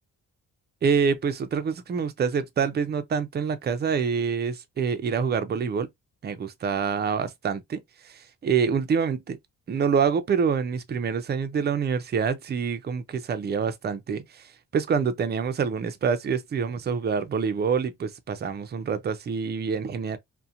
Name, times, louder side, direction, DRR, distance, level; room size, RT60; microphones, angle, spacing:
voice 1, 0.8-5.9 6.2-9.4 9.7-20.2, right 6 dB, 30° right, 0.4 m, -26 dB
2.7 x 2.1 x 2.4 m
cardioid pair, 110°, 34 cm